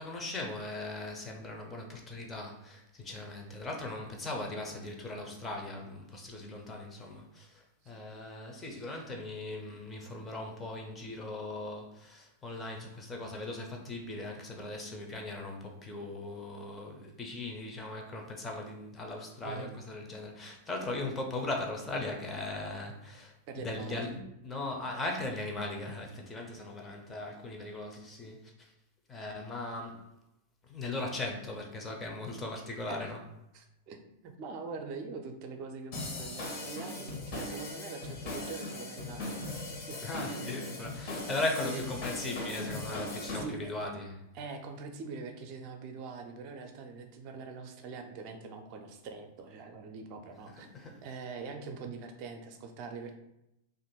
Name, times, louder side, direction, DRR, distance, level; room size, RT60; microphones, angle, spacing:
voice 1, 0.0-28.7 29.1-30.1 30.6-33.2 40.0-44.2 50.5-51.0, left 2 dB, 20° left, 1 dB, 0.7 m, -39 dB
voice 2, 23.5-24.1 32.8-33.1 33.5-39.3 39.7-40.7 41.0-41.3 41.6-41.8 43.3-43.7 44.3-50.7 51.0-53.2, right 4 dB, 45° right, 4 dB, 0.6 m, -43 dB
sound 1, 35.9-43.4, left 2 dB, 50° left, 1.2 m, -39 dB
2.9 x 2.6 x 4.3 m, 0.86 s
figure-of-eight pair, 95°, 0 cm